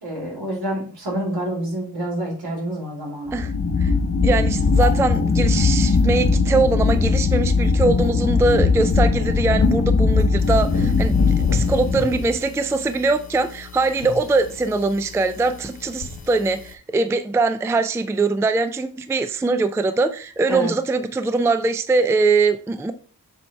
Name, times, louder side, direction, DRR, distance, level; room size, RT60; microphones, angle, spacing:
voice 1, 0.0-3.4 20.5-20.7, right 1 dB, 75° right, 3.1 m, -27 dB
sound 1, 3.3-12.4, left 4 dB, 35° left, 0.7 m, -19 dB
voice 2, 4.2-22.9, right 3 dB, 10° right, 0.3 m, -22 dB
sound 2, 10.4-16.7, left 4 dB, 80° left, 1.0 m, -36 dB
7.0 x 3.3 x 4.3 m
wide cardioid pair, 125°, 39 cm